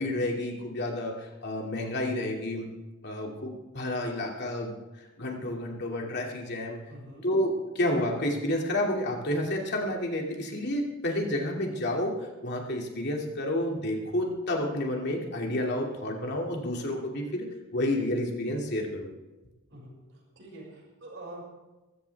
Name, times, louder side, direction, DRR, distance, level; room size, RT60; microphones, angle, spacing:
voice 1, 0.0-2.7 3.0-4.7 5.2-6.8 7.2-19.1, left 1 dB, 55° left, 0 dB, 2.6 m, -30 dB
voice 2, 6.8-7.2 19.7-21.5, right 1 dB, 60° right, -4 dB, 6.3 m, -46 dB
21.5 x 15.0 x 3.6 m, 1.1 s
head